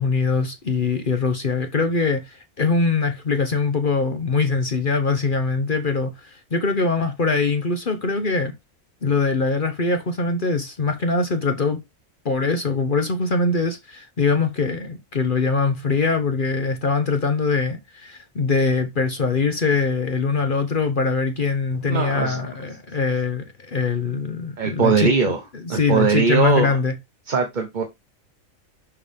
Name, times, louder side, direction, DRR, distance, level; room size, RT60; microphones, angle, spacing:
voice 1, 0.0-8.5 9.0-11.8 12.2-26.9, left 4 dB, 40° left, 1.0 m, -22 dB
voice 2, 21.8-22.5 24.6-25.4 25.7-26.8 27.3-27.8, right 5 dB, 40° right, 1.0 m, -20 dB
6.5 x 5.5 x 3.5 m
omnidirectional pair, 1.4 m